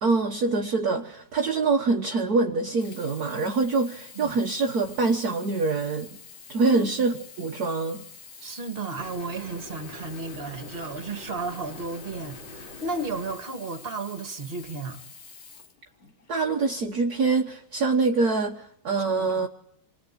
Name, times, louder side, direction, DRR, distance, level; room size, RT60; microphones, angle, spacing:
voice 1, 0.0-6.1 6.5-8.0 16.3-19.5, right 3 dB, 50° right, 1.7 m, -25 dB
Sink (filling or washing), 2.7-16.4 17.2-17.3, left 5 dB, 45° left, 2.0 m, -47 dB
voice 2, 8.4-15.0 19.2-19.5, right 3 dB, 30° right, 2.2 m, -33 dB
sound 1, 9.0-13.4, left 2 dB, 65° left, 3.6 m, -44 dB
27.5 x 20.0 x 8.6 m
omnidirectional pair, 2.3 m